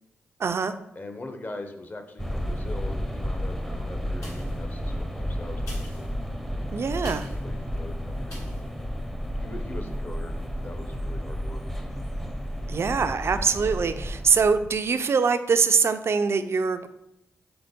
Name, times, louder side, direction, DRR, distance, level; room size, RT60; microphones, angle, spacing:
voice 1, 0.4-0.8 6.7-7.3 12.7-16.9, right 5 dB, 55° right, 10 dB, 0.4 m, -23 dB
voice 2, 0.9-6.1 6.8-8.7 9.4-11.6, left 2 dB, 35° left, 6 dB, 0.8 m, -42 dB
sound 1, 2.2-14.8, equal, 5° left, 0.6 m, -32 dB
sound 2, 4.2-4.7 5.5-7.5 8.3-8.7 9.2-9.3, left 1 dB, 75° left, 1.7 m, -45 dB
3.9 x 3.6 x 3.5 m, 0.83 s
supercardioid pair, 40°, 5 cm